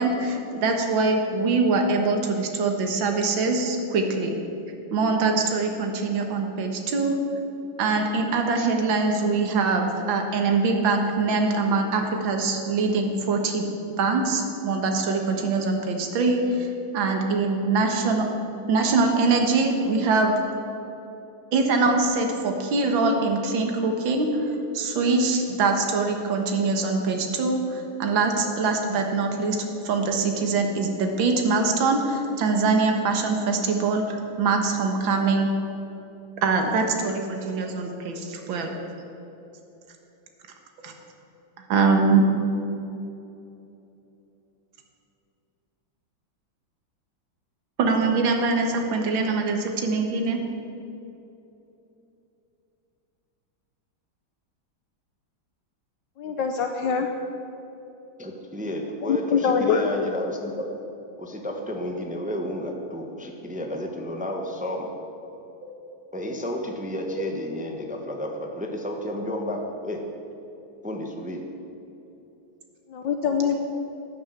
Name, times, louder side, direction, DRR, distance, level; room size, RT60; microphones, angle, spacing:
voice 1, 0.0-4.4 4.9-7.2 7.8-13.7 14.0-18.3 18.7-20.4 21.5-29.6 29.8-35.5 36.4-38.7 40.8-40.9 41.7-42.3 47.8-50.4 65.6-65.7, right 3 dB, 80° right, 3 dB, 2.1 m, -23 dB
voice 2, 56.2-57.1 59.0-59.8 72.9-73.6, left 6 dB, 70° left, 5 dB, 1.4 m, -24 dB
voice 3, 58.2-60.6 61.2-64.9 66.1-70.0 70.8-71.4, left 1 dB, 5° right, 2 dB, 0.9 m, -31 dB
12.0 x 9.9 x 7.9 m, 2.9 s
omnidirectional pair, 2.2 m